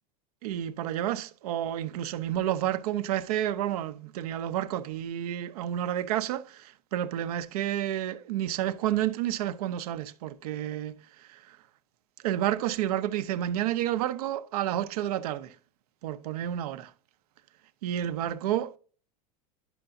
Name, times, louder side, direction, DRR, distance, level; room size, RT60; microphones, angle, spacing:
voice 1, 0.4-11.6 12.2-15.6 16.0-16.9 17.8-18.8, right 12 dB, 85° right, 0.7 m, -30 dB
11.0 x 5.8 x 2.6 m
supercardioid pair, 140°, 19 cm